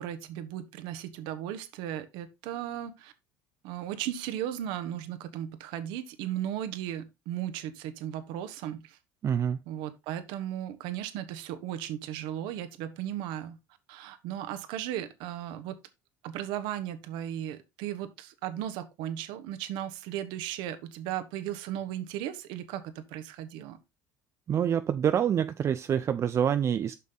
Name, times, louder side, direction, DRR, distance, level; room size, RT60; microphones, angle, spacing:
voice 1, 0.0-3.1 3.6-9.0 9.7-13.6 13.9-15.8 16.2-23.8, right 11 dB, 75° right, 1.3 m, -36 dB
voice 2, 9.2-9.6 24.5-26.9, right 9 dB, 35° right, 0.5 m, -26 dB
7.4 x 5.8 x 3.8 m
cardioid pair, 120°, 8 cm